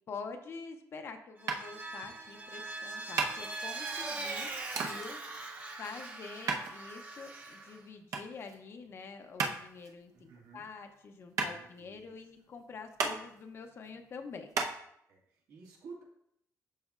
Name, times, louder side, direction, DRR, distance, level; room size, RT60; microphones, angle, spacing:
voice 1, 0.1-5.5 5.8-14.5, left 4 dB, 40° left, 6 dB, 0.7 m, -46 dB
Vehicle, 1.4-7.8, right 3 dB, 25° right, 0.8 m, -41 dB
sound 1, 1.5-14.7, right 4 dB, 65° right, 0.8 m, -38 dB
voice 2, 10.1-10.7 11.4-12.2 15.1-16.0, right 4 dB, 80° right, -2 dB, 2.0 m, -52 dB
12.0 x 4.1 x 2.5 m, 0.71 s
cardioid pair, 165°, 6 cm